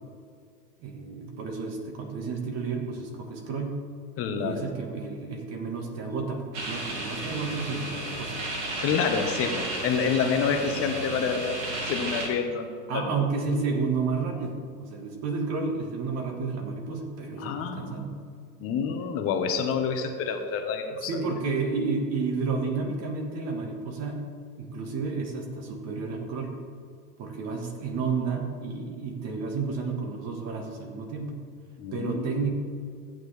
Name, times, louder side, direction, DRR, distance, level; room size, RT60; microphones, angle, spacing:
voice 1, 0.8-3.8 4.4-8.4 12.9-18.1 21.0-24.2 24.6-26.5 27.2-31.4 31.9-32.5, right 4 dB, 30° right, 3 dB, 1.6 m, -31 dB
voice 2, 4.2-4.6 8.8-13.1 17.4-18.0 18.6-21.3 31.8-32.4, left 6 dB, 30° left, 5 dB, 1.1 m, -28 dB
sound 1, 6.5-12.3, right 2 dB, 45° right, 2.6 m, -33 dB
14.0 x 9.0 x 3.4 m, 2.2 s
hypercardioid pair, 125°, 48 cm